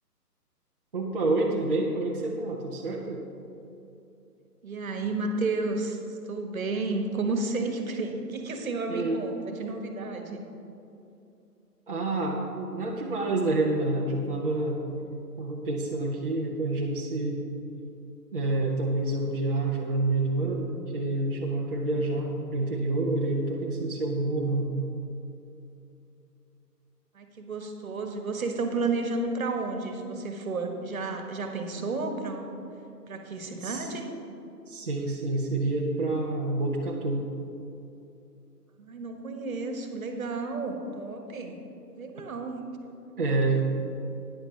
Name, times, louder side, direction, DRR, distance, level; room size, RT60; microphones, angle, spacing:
voice 1, 0.9-3.2 8.9-9.2 11.9-14.8 15.4-17.4 18.3-24.7 33.6-33.8 34.7-37.2 43.2-43.6, right 2 dB, 35° right, -3 dB, 0.8 m, -28 dB
voice 2, 4.6-10.4 27.1-32.5 33.1-34.1 38.8-41.6 42.0-42.6, right 3 dB, 55° right, 4 dB, 1.5 m, -32 dB
13.0 x 10.0 x 3.3 m, 2.8 s
hypercardioid pair, 160°, 49 cm